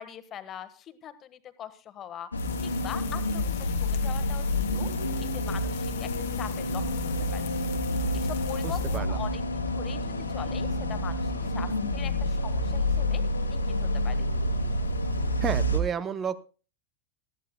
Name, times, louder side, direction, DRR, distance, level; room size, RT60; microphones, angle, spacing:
voice 1, 0.0-2.3 2.6-4.9 5.2-6.8 7.3-7.4 8.1-13.2 13.5-14.2, left 10 dB, 30° left, 12 dB, 1.3 m, -42 dB
sound 1, 2.3-15.8, left 1 dB, 80° left, 1.9 m, -28 dB
sound 2, 2.4-9.0, left 17 dB, 50° left, 1.2 m, -45 dB
voice 2, 8.6-9.2 15.4-16.4, right 7 dB, 25° right, 17 dB, 0.6 m, -31 dB
19.0 x 14.0 x 2.2 m, 0.35 s
figure-of-eight pair, 90°, 0 cm